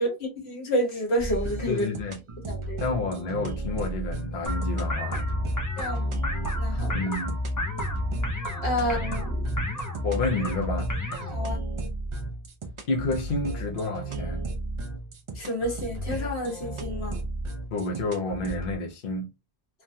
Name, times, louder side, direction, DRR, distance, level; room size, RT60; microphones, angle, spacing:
voice 1, 0.0-1.8 2.5-2.8 5.8-6.2 6.6-6.9 8.6-9.4 11.3-11.6 15.3-17.2, equal, 85° left, 1.4 m, -29 dB
sound 1, 1.2-18.8, right 2 dB, 45° right, 0.4 m, -34 dB
voice 2, 1.7-2.2 2.8-5.3 6.9-7.4 10.0-10.9 12.9-14.5 17.7-19.3, left 2 dB, 60° left, 0.9 m, -29 dB
sound 2, 4.5-11.6, left 1 dB, 30° left, 0.4 m, -30 dB
3.2 x 2.2 x 2.6 m
omnidirectional pair, 1.0 m